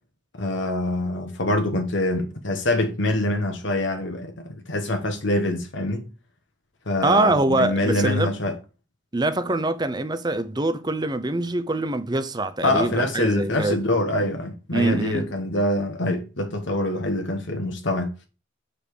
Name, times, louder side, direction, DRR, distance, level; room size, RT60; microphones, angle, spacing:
voice 1, 0.4-6.1 6.9-8.6 12.6-18.1, left 1 dB, 65° left, 1.2 m, -25 dB
voice 2, 7.0-8.3 9.1-13.8 14.7-15.3, right 2 dB, 20° right, 0.7 m, -24 dB
7.0 x 5.1 x 4.7 m
head